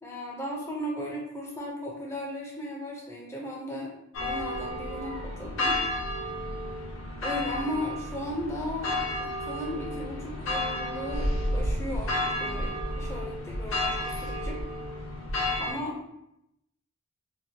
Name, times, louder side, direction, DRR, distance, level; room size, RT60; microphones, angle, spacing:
voice 1, 0.0-3.9 4.2-5.8 7.2-14.6 15.6-16.0, left 1 dB, 15° left, -2 dB, 0.4 m, -36 dB
sound 1, 4.1-15.7, left 1 dB, 65° left, 0.7 m, -31 dB
2.6 x 2.1 x 2.7 m, 0.80 s
head